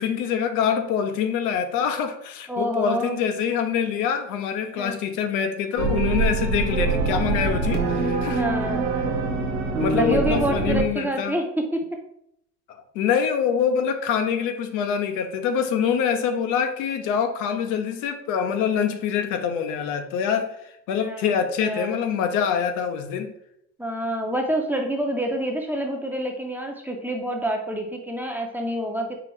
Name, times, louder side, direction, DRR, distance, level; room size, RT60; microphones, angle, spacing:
voice 1, 0.0-8.4 9.3-9.4 9.8-11.4 12.7-20.5 20.9-23.3, left 7 dB, 70° left, 7 dB, 0.6 m, -25 dB
voice 2, 2.5-3.2 4.8-5.0 8.3-8.9 9.9-11.8 21.0-22.0 23.8-29.2, right 1 dB, 5° right, 2 dB, 0.6 m, -27 dB
sound 1, 5.8-10.8, right 3 dB, 90° right, 1.0 m, -24 dB
4.7 x 2.4 x 3.5 m, 0.74 s
supercardioid pair, 95°, 32 cm